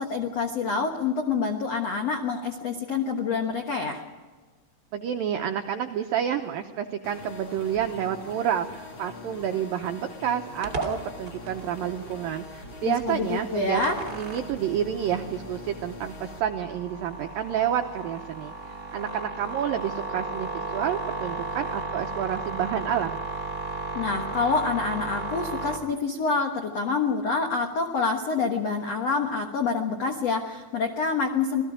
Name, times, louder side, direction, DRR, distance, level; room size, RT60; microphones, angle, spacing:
voice 1, 0.0-4.0 12.8-13.9 23.9-31.6, left 4 dB, 75° left, 4 dB, 1.4 m, -27 dB
voice 2, 4.9-8.7 9.0-13.8 14.1-23.2, right 9 dB, 85° right, 5 dB, 2.0 m, -29 dB
sound 1, 7.0-16.4, left 4 dB, 40° left, 1.9 m, -44 dB
sound 2, 10.6-25.8, right 2 dB, 30° right, 2.2 m, -35 dB
27.5 x 19.5 x 5.1 m, 1.4 s
omnidirectional pair, 5.2 m